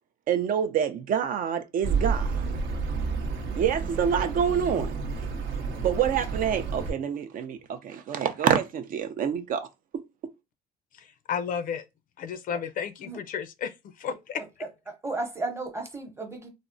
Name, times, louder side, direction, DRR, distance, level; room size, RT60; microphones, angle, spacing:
voice 1, 0.3-2.5 3.6-5.0 5.8-9.7 9.9-10.0, right 8 dB, 55° right, 0.5 m, -27 dB
Accelerating revving vroom, 1.8-6.9, right 4 dB, 85° right, 0.8 m, -30 dB
voice 2, 11.0-11.8 12.2-14.4, left 7 dB, 55° left, 0.4 m, -33 dB
voice 3, 14.4-16.5, right 2 dB, 15° right, 0.8 m, -35 dB
3.4 x 2.0 x 2.5 m
cardioid pair, 110°, 17 cm